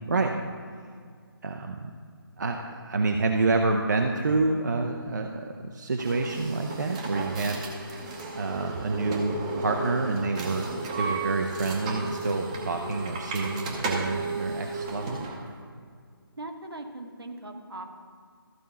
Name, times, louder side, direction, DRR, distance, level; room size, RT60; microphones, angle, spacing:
voice 1, 1.4-1.9 2.4-8.0 8.3-10.7 11.0-15.2, right 3 dB, 50° right, 3 dB, 0.6 m, -28 dB
sound 1, 6.0-15.4, right 3 dB, 15° right, 0.8 m, -34 dB
voice 2, 16.4-17.9, right 2 dB, 75° right, 3 dB, 1.3 m, -40 dB
13.5 x 4.6 x 5.6 m, 2.1 s
figure-of-eight pair, 150°, 13 cm